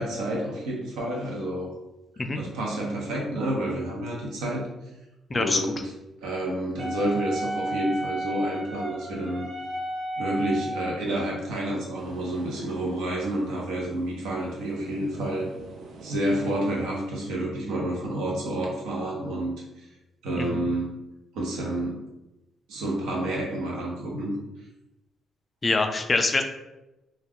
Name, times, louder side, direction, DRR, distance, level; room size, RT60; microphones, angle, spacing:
voice 1, 0.0-1.7 2.3-4.7 5.3-5.9 6.2-9.5 10.2-15.5 16.0-19.5 20.2-20.9 21.3-22.0 22.7-24.3, right 1 dB, 90° right, -2 dB, 0.8 m, -29 dB
voice 2, 5.3-5.6 20.4-20.7 25.6-26.4, left 3 dB, 30° left, 5 dB, 0.3 m, -24 dB
Wind instrument woodwind instrument, 6.8-11.0, right 1 dB, 30° right, 0.7 m, -33 dB
sound 1, 11.9-17.1, right 3 dB, 65° right, 0.4 m, -46 dB
2.4 x 2.3 x 3.4 m, 0.97 s
cardioid pair, 90°, 0 cm